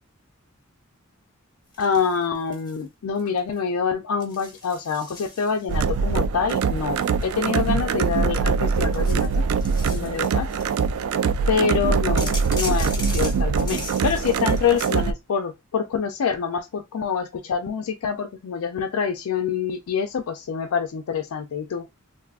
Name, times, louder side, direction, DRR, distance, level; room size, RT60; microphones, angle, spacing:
sound 1, 1.7-2.8 3.2-3.6 4.2-5.9 6.5-8.2 8.7-10.8 12.2-15.0, left 2 dB, 20° left, 0.7 m, -38 dB
voice 1, 1.8-9.4 9.9-10.5 11.5-21.9, left 6 dB, 85° left, 0.4 m, -26 dB
sound 2, 5.7-15.1, right 5 dB, 80° right, 0.3 m, -23 dB
3.4 x 2.6 x 2.4 m
head